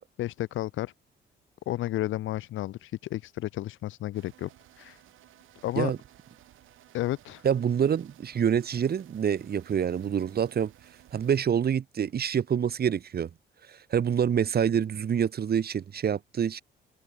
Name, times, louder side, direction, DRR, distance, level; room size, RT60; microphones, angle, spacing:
voice 1, 0.2-0.9 1.7-4.5 4.8-5.0 5.6-5.9 6.9-7.4, left 14 dB, 80° left, 1.0 m, -32 dB
sound 1, 4.1-11.4, right 14 dB, 85° right, 6.6 m, -57 dB
voice 2, 7.4-10.7 11.1-13.3 13.9-16.6, right 8 dB, 50° right, 2.3 m, -26 dB
cardioid pair, 90°, 20 cm